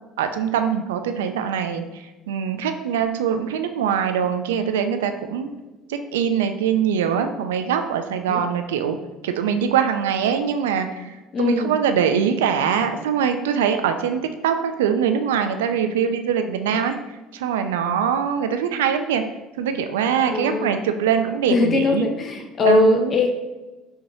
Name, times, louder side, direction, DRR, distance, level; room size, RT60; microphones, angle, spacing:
voice 1, 0.2-5.5 5.9-9.0 9.2-16.9 17.3-19.2 19.6-22.1 22.6-23.1, right 7 dB, 90° right, 7 dB, 0.3 m, -23 dB
voice 2, 11.3-11.7 20.3-20.8 21.5-23.3, left 3 dB, 45° left, 4 dB, 0.6 m, -20 dB
5.5 x 2.8 x 2.7 m, 1.1 s
supercardioid pair, 75°, 0 cm